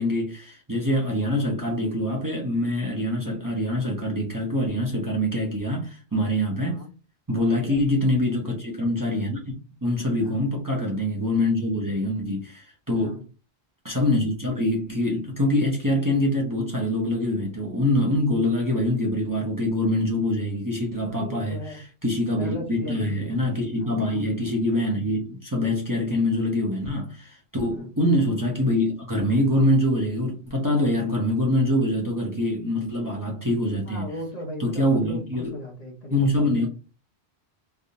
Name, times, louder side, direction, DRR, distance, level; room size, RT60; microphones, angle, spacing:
voice 1, 0.0-6.9 7.3-9.5 9.8-13.2 13.8-34.1 34.6-35.5 36.1-36.7, left 1 dB, 20° right, 0.8 m, -24 dB
voice 2, 7.5-7.8 10.2-10.5 13.0-13.2 21.0-21.8 22.3-23.4 23.8-24.2 27.7-27.9 33.8-36.4, left 1 dB, 40° left, 0.9 m, -37 dB
3.4 x 2.7 x 2.7 m
omnidirectional pair, 1.1 m